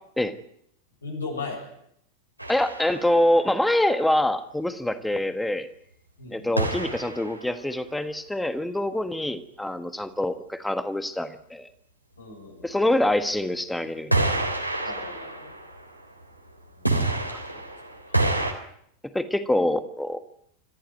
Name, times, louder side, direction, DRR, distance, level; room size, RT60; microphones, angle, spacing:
voice 1, 1.0-1.7 5.1-5.2 6.2-6.6 12.2-12.8 14.8-15.5 16.8-17.0 17.5-17.6 18.0-18.1, left 3 dB, 75° left, 2 dB, 7.7 m, -37 dB
sound 1, 2.4-3.4 6.6-7.7 14.1-16.4 16.8-18.5, right 2 dB, 90° right, 3.6 m, -28 dB
voice 2, 2.5-5.7 6.3-11.7 12.6-14.3 17.3-17.4 19.1-20.2, left 1 dB, 5° left, 11 dB, 1.5 m, -25 dB
27.5 x 14.5 x 9.2 m, 0.72 s
figure-of-eight pair, 90°, 0 cm